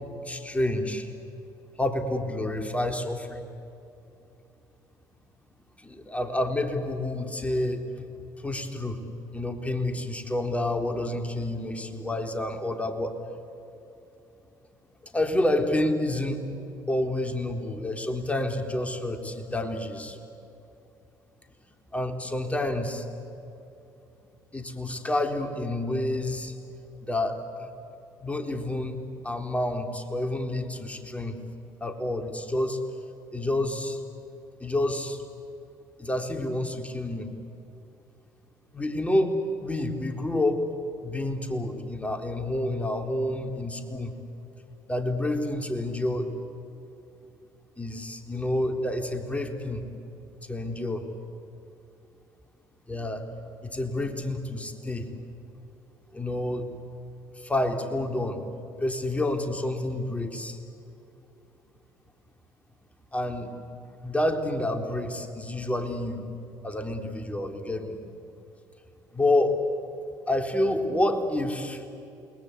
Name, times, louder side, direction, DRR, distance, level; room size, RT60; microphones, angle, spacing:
voice 1, 0.2-1.1 1.8-3.4 5.8-8.1 8.4-9.0 9.3-13.2 15.0-16.4 16.9-20.2 21.9-23.1 24.5-26.6 27.0-27.7 28.2-29.0 29.2-31.4 31.8-32.8 33.3-34.0 34.6-35.2 36.0-37.3 38.7-40.6 41.0-44.1 44.9-46.3 47.8-49.8 50.5-51.1 52.9-53.3 53.6-55.1 56.1-56.7 57.3-58.4 58.8-60.6 63.1-63.5 64.0-66.2 66.6-68.0 69.1-69.6 70.3-71.8, left 1 dB, 15° left, 5 dB, 3.7 m, -29 dB
29.0 x 21.0 x 8.3 m, 2.9 s
hypercardioid pair, 55°, 9 cm